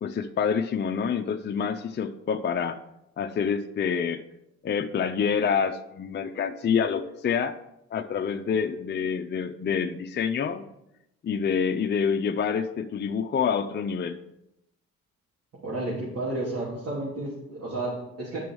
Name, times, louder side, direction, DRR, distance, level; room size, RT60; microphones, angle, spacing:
voice 1, 0.0-2.8 3.2-4.2 4.6-7.5 7.9-10.7 11.2-14.2, left 6 dB, 35° left, 6 dB, 0.6 m, -27 dB
voice 2, 15.6-18.4, right 2 dB, 55° right, -6 dB, 3.1 m, -32 dB
9.2 x 6.1 x 4.7 m, 0.84 s
cardioid pair, 90°, 30 cm